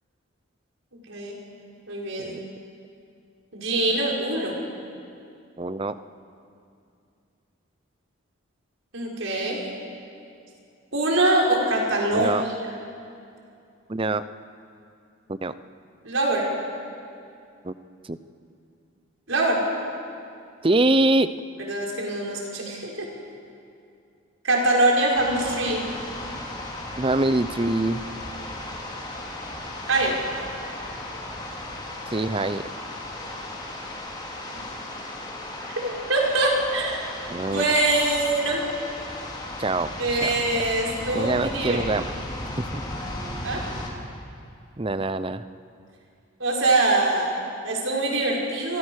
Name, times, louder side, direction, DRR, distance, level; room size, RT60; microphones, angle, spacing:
voice 1, 1.9-2.4 3.5-4.6 8.9-9.6 10.9-12.5 16.0-16.5 19.3-19.6 21.6-23.1 24.4-25.8 29.9-30.2 35.8-37.0 37.4-38.6 40.0-41.8 43.4-43.6 46.4-48.8, right 2 dB, 75° right, -2 dB, 5.8 m, -23 dB
voice 2, 5.6-5.9 12.1-12.4 13.9-14.2 15.3-15.5 17.6-17.7 18.0-18.2 20.6-21.3 27.0-28.0 32.1-32.6 37.3-37.6 39.6-40.3 41.1-42.0 42.7-42.8 44.8-45.5, right 2 dB, 25° right, 13 dB, 0.7 m, -24 dB
sound 1, 25.1-43.9, left 1 dB, 20° left, 3.4 m, -35 dB
29.5 x 23.5 x 6.5 m, 2.5 s
head